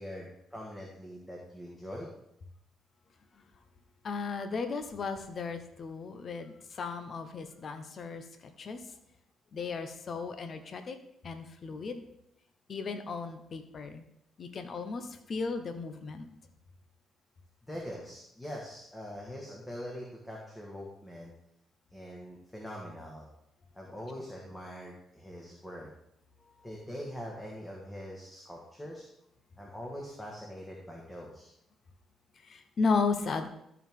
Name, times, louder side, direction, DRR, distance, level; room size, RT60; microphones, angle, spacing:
voice 1, 0.0-2.1 17.6-21.3 21.9-23.3 23.7-25.9 26.6-29.1 29.6-31.5, equal, 10° left, -2 dB, 1.7 m, -43 dB
voice 2, 4.0-8.8 9.5-11.0 11.2-12.0 12.7-14.0 14.4-16.3 32.4-33.5, left 4 dB, 50° left, 8 dB, 0.8 m, -35 dB
13.0 x 4.7 x 3.6 m, 0.78 s
cardioid pair, 90°, 0 cm